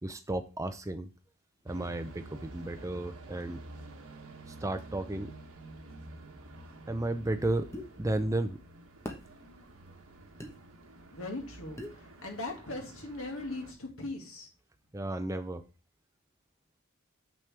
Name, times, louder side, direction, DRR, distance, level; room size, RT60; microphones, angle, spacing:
voice 1, 0.0-1.1 1.6-3.6 4.5-5.3 6.9-7.7 8.0-8.6 14.9-15.6, right 1 dB, 15° right, 0.5 m, -33 dB
sound 1, 1.7-13.7, right 2 dB, 85° right, 1.2 m, -49 dB
sound 2, 7.7-7.9 9.1-9.3 10.4-10.5 11.8-12.0, left 1 dB, 15° left, 1.0 m, -40 dB
voice 2, 11.1-14.5, left 2 dB, 75° left, 2.1 m, -39 dB
7.4 x 6.1 x 3.4 m
head